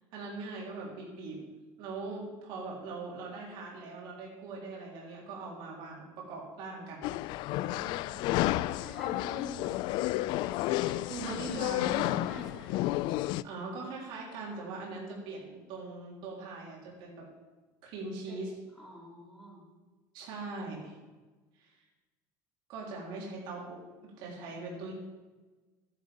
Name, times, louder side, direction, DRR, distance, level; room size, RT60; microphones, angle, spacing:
voice 1, 0.1-1.4 1.8-7.1 10.9-12.3 13.4-17.3 17.8-18.5 20.1-20.9 21.6-21.7 22.7-24.9, right 3 dB, 55° right, -3 dB, 3.6 m, -41 dB
sound 1, 7.0-13.4, left 16 dB, 55° left, 0.3 m, -31 dB
voice 2, 8.8-9.8 10.3-10.9 12.2-12.9 18.3-19.6, equal, ahead, -7 dB, 4.0 m, -48 dB
12.0 x 10.5 x 5.2 m, 1.3 s
cardioid pair, 155°, 9 cm